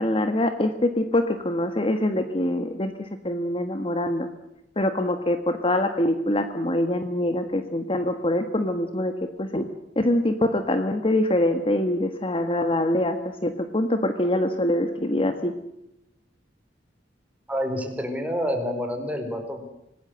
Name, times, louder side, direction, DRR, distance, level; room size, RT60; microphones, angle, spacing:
voice 1, 0.0-2.9 3.2-4.3 4.8-9.1 9.4-9.6 9.9-13.2 13.4-15.5, left 1 dB, 30° left, 8 dB, 1.5 m, -24 dB
voice 2, 17.5-19.6, equal, 10° right, 4 dB, 4.6 m, -28 dB
26.0 x 18.5 x 7.9 m, 0.85 s
head